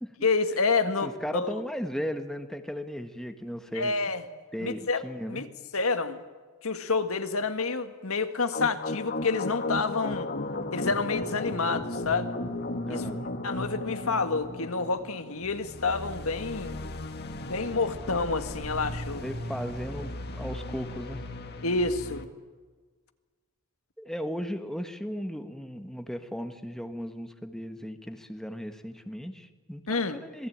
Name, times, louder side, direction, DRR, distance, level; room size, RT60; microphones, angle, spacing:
voice 1, 0.2-1.5 3.7-4.2 4.6-5.0 5.3-5.5 5.7-6.2 6.6-10.3 10.7-12.3 12.9-13.0 13.4-16.8 17.4-19.2 21.6-22.3 29.9-30.2, left 4 dB, 70° left, 8 dB, 1.8 m, -28 dB
voice 2, 0.8-4.0 4.5-5.4 12.9-13.2 19.2-21.2 24.0-30.5, equal, ahead, 7 dB, 1.4 m, -36 dB
sound 1, 8.5-22.2, left 2 dB, 50° left, 1.9 m, -36 dB
27.0 x 19.5 x 8.8 m, 1.4 s
head